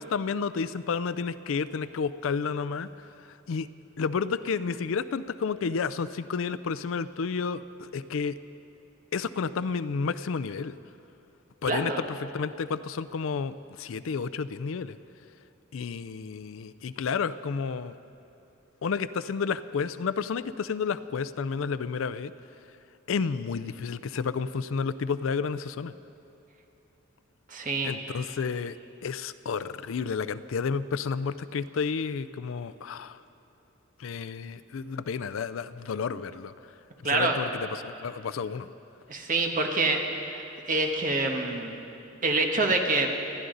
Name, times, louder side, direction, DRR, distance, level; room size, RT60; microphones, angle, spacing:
voice 1, 0.0-2.9 3.5-3.7 4.0-8.4 9.1-10.8 11.6-15.0 15.7-18.0 18.8-22.3 23.1-25.9 27.8-28.8 29.0-33.2 34.0-36.5 37.0-38.7, left 5 dB, 70° left, 15 dB, 0.4 m, -31 dB
voice 2, 11.7-12.1 27.5-27.9 37.0-37.4 39.1-40.0 40.3-41.8 42.2-43.1, right 3 dB, 40° right, 2 dB, 1.4 m, -26 dB
27.0 x 11.0 x 3.9 m, 2.9 s
head